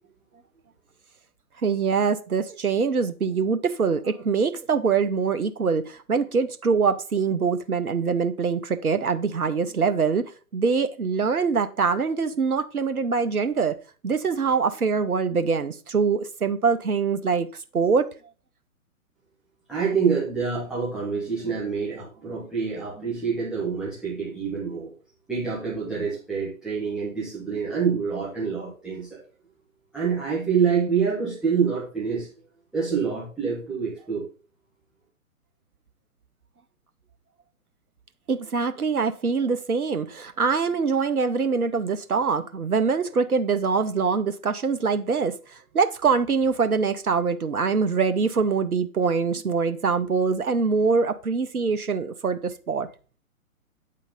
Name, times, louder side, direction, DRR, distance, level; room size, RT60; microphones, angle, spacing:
voice 1, 1.6-10.3 10.5-13.7 14.0-17.5 17.7-18.1 38.3-52.9, right 5 dB, 85° right, 0.7 m, -24 dB
voice 2, 19.7-24.9 25.3-29.2 29.9-32.3 32.7-34.3, right 6 dB, ahead, 0.7 m, -26 dB
8.3 x 3.8 x 5.0 m
figure-of-eight pair, 125°, 43 cm